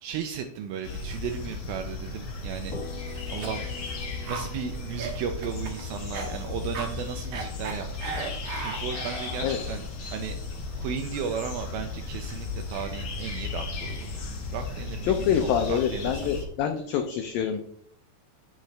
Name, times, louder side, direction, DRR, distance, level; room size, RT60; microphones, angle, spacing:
voice 1, 0.0-2.8 3.3-8.3 8.6-9.8 10.1-10.4 10.8-14.1 14.5-16.2, right 7 dB, 85° right, 5 dB, 2.1 m, -35 dB
sound 1, 0.8-16.4, left 4 dB, 65° left, 1.4 m, -35 dB
sound 2, 2.7-10.4, left 2 dB, 50° left, 2.5 m, -46 dB
Cough, 3.1-9.7, right 4 dB, 65° right, 1.9 m, -38 dB
voice 2, 15.0-17.6, left 8 dB, 85° left, 6 dB, 2.0 m, -26 dB
8.5 x 6.4 x 3.3 m, 0.63 s
omnidirectional pair, 4.9 m